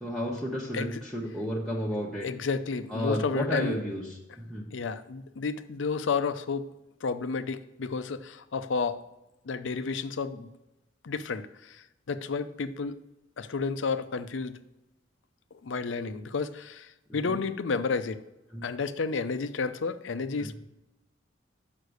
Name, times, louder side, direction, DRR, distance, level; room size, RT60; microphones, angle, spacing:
voice 1, 0.0-2.3 2.9-4.7 17.2-17.4 18.5-18.7, equal, ahead, -6 dB, 0.9 m, -32 dB
voice 2, 2.2-3.8 4.7-6.7 7.0-9.0 9.5-10.5 11.0-13.0 13.4-14.6 15.6-18.2 18.6-20.5, left 4 dB, 70° left, 12 dB, 0.5 m, -31 dB
6.6 x 5.8 x 6.4 m, 0.95 s
head